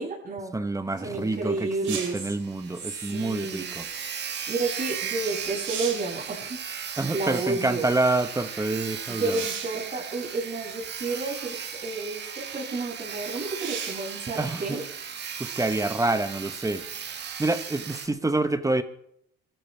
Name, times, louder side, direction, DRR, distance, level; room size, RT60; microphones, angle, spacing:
voice 1, 0.0-0.6 1.0-2.3 2.9-3.7 4.5-6.6 7.1-7.9 9.1-14.8, right 3 dB, 40° right, -4 dB, 7.7 m, -31 dB
voice 2, 0.5-3.8 7.0-9.4 14.4-14.8 15.4-16.8 17.4-18.8, right 2 dB, 15° right, 10 dB, 1.3 m, -27 dB
Sawing, 1.2-1.3 1.6-1.7 2.1-2.2 2.3-18.1, right 7 dB, 60° right, 2.4 m, -36 dB
sound 1, 1.8-2.3 4.9-5.0 5.4-6.2 9.3-9.8 10.8-10.9 13.5-14.1 17.7-17.8, right 7 dB, 80° right, 4.1 m, -35 dB
23.5 x 13.5 x 3.5 m, 0.72 s
cardioid pair, 90°, 20 cm